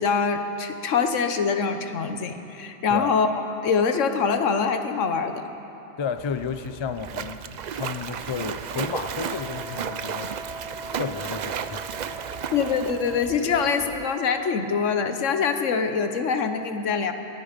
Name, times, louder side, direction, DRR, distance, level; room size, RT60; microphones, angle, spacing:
voice 1, 0.0-3.3 3.6-5.4 12.5-17.1, left 5 dB, 85° left, 8 dB, 1.3 m, -24 dB
voice 2, 6.0-10.3 10.9-12.4, left 6 dB, 45° left, 11 dB, 0.3 m, -32 dB
Splash splatter, 6.2-14.1, right 8 dB, 60° right, 0.4 m, -34 dB
Wind instrument woodwind instrument, 8.7-13.9, equal, 35° right, 1.4 m, -41 dB
22.0 x 12.5 x 5.1 m, 2.9 s
omnidirectional pair, 1.2 m